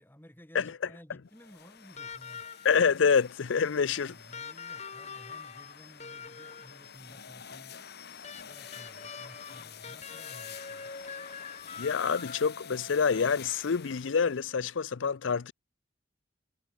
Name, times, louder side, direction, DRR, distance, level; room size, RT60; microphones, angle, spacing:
voice 1, 0.0-2.5 3.9-7.9 8.4-10.9, equal, 10° left, 3.1 m, -55 dB
sound 1, 1.3-14.5, left 7 dB, 60° left, 2.1 m, -48 dB
sound 2, 2.0-2.9 4.3-6.9 8.2-12.7 14.0-14.1, left 5 dB, 35° left, 3.6 m, -44 dB
voice 2, 2.6-4.2 11.8-15.5, left 6 dB, 80° left, 0.6 m, -27 dB
head